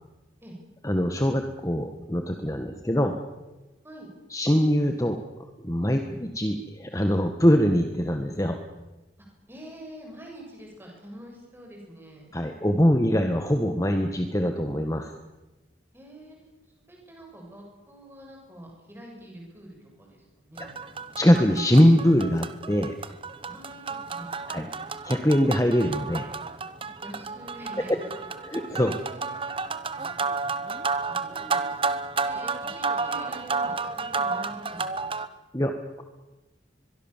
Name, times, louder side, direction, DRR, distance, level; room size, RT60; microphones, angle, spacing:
voice 1, 0.8-3.1 4.3-5.2 5.6-8.6 12.3-15.1 20.6-20.7 21.2-22.9 24.5-24.7 25.0-26.3 27.9-28.0 28.4-29.0 35.5-35.7, equal, 15° left, 5 dB, 1.5 m, -23 dB
voice 2, 6.0-6.4 9.5-12.3 15.9-16.4 16.9-20.7 23.4-24.8 27.0-28.1 28.5-28.6 29.0-29.9 31.3-34.8, right 1 dB, 10° right, 0 dB, 7.4 m, -46 dB
sound 1, 20.6-35.3, right 4 dB, 30° right, 1.1 m, -31 dB
24.0 x 22.5 x 7.4 m, 1.1 s
head